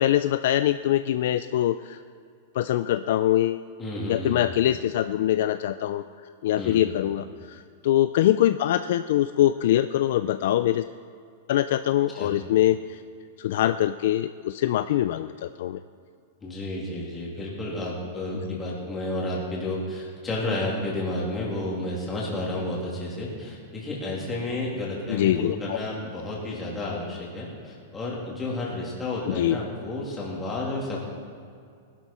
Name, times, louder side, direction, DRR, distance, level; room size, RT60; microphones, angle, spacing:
voice 1, 0.0-2.0 2.5-3.6 4.1-6.0 6.4-10.8 11.5-13.0 13.4-15.8 25.1-25.8 29.2-29.6, left 12 dB, 50° left, 11 dB, 0.3 m, -23 dB
voice 2, 3.8-4.6 6.6-7.0 12.1-12.3 16.4-31.0, left 2 dB, 10° left, -4 dB, 2.5 m, -31 dB
20.0 x 12.0 x 4.3 m, 2.3 s
supercardioid pair, 180°, 0 cm